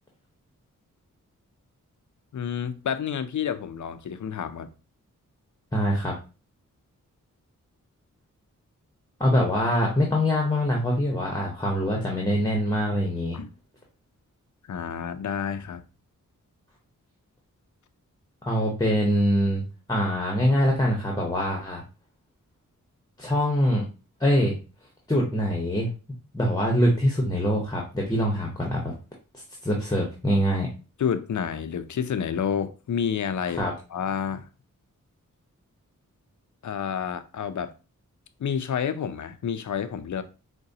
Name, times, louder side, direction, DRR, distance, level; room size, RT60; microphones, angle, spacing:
voice 1, 2.3-4.7 13.3-13.5 14.7-15.8 31.0-34.5 36.6-37.7 38.4-40.2, left 7 dB, 60° left, 0.5 m, -29 dB
voice 2, 5.7-6.1 9.2-13.4 18.5-21.8 23.2-23.9 24.2-24.6 25.1-25.9 26.3-28.9 29.6-30.7 33.5-33.7, equal, 10° left, 1.0 m, -24 dB
4.7 x 2.2 x 2.7 m
cardioid pair, 45°, 33 cm